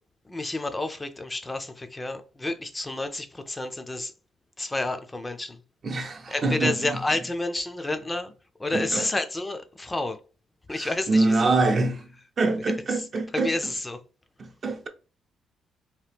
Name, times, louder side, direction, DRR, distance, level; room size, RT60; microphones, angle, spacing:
voice 1, 0.3-4.1 4.6-5.6 6.3-8.3 8.6-10.2 10.7-11.5 12.9-13.0 13.3-14.0, left 2 dB, 15° left, 0.4 m, -30 dB
voice 2, 5.8-7.0 8.7-9.0 10.7-13.5 14.4-14.9, right 3 dB, 40° right, 0.5 m, -25 dB
2.8 x 2.2 x 3.4 m
cardioid pair, 90°, 0 cm